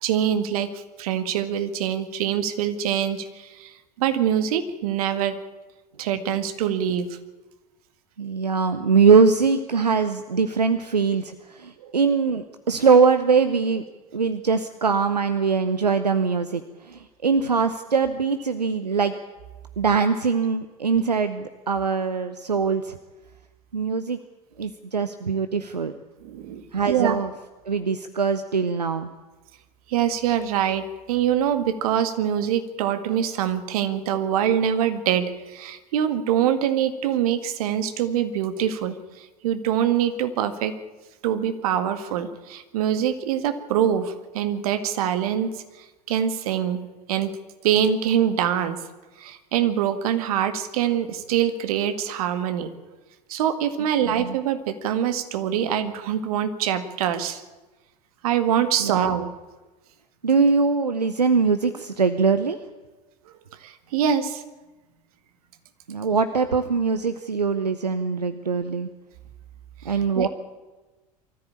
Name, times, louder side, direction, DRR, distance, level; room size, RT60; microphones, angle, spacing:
voice 1, 0.0-5.4 6.0-7.1 11.8-11.9 26.2-27.2 29.9-40.7 41.2-46.8 47.1-47.4 47.6-48.8 49.2-52.7 53.3-57.4 58.2-59.3 63.6-64.4 69.9-70.3, right 9 dB, 65° right, 10 dB, 1.9 m, -24 dB
voice 2, 8.2-13.8 14.1-19.1 19.8-23.0 23.7-24.2 24.6-25.9 26.7-27.3 27.7-29.1 54.0-54.4 58.8-59.2 60.2-62.6 65.9-68.9 69.8-70.3, right 5 dB, 85° right, 10 dB, 0.9 m, -22 dB
23.5 x 14.0 x 8.7 m, 1.2 s
figure-of-eight pair, 75°, 20 cm